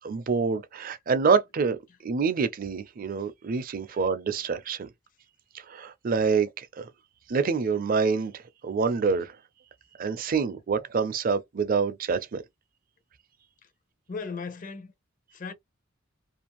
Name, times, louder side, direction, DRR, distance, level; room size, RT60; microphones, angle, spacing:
voice 1, 0.0-4.9 5.7-6.9 7.3-9.4 10.0-12.4, right 5 dB, 45° right, 0.4 m, -26 dB
voice 2, 14.1-14.9 15.3-15.5, left 4 dB, 45° left, 0.6 m, -37 dB
2.5 x 2.4 x 2.9 m
head